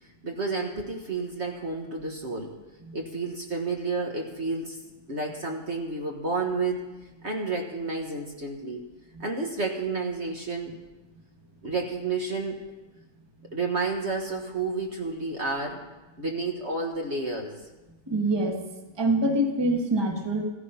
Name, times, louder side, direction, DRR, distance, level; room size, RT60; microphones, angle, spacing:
voice 1, 0.0-2.5 2.9-4.8 5.1-6.8 7.2-8.9 9.2-10.8 11.6-12.6 13.5-15.8 16.2-17.6, right 3 dB, 45° right, 1 dB, 1.6 m, -30 dB
voice 2, 18.1-18.6 19.0-20.4, right 1 dB, 15° right, 3 dB, 1.4 m, -25 dB
15.0 x 14.5 x 5.7 m, 1.1 s
omnidirectional pair, 1.8 m